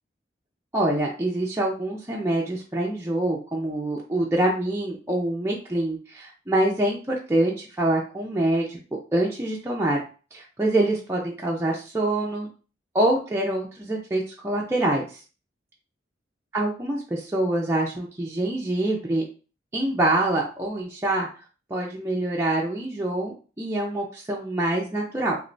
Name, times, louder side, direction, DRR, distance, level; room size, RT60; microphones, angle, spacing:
voice 1, 0.7-8.8 9.1-10.0 10.3-12.5 12.9-15.2 16.5-19.2 19.7-21.3 21.7-25.4, right 1 dB, 15° right, -3 dB, 0.5 m, -25 dB
3.1 x 3.0 x 2.6 m, 0.36 s
head